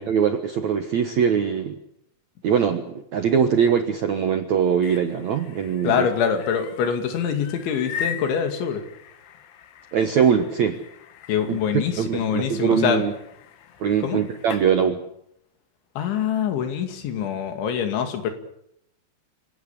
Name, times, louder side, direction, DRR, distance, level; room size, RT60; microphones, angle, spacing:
voice 1, 0.0-1.8 2.4-2.8 3.1-6.1 9.9-10.8 11.5-11.6 12.0-13.1 13.8-15.0, right 7 dB, 70° right, 8 dB, 1.7 m, -22 dB
sound 1, 4.6-14.7, left 8 dB, 70° left, 3.6 m, -40 dB
voice 2, 5.8-8.8 11.3-13.0 14.0-14.2 16.0-18.3, left 7 dB, 85° left, 7 dB, 4.8 m, -24 dB
26.5 x 18.0 x 8.5 m, 0.76 s
omnidirectional pair, 5.2 m